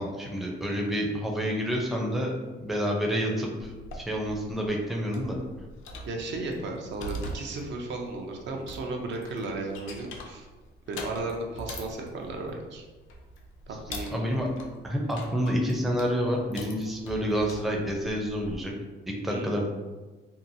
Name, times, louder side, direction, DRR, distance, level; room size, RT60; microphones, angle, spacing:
voice 1, 0.0-5.4 14.1-14.5 14.8-18.7 19.1-19.7, equal, ahead, -1 dB, 0.4 m, -29 dB
sound 1, 3.6-18.6, equal, 85° left, 0.5 m, -43 dB
voice 2, 6.1-10.5 10.9-12.8 13.7-14.3 19.3-19.6, right 2 dB, 65° right, 1 dB, 0.5 m, -35 dB
2.8 x 2.2 x 2.6 m, 1.2 s
cardioid pair, 90°, 20 cm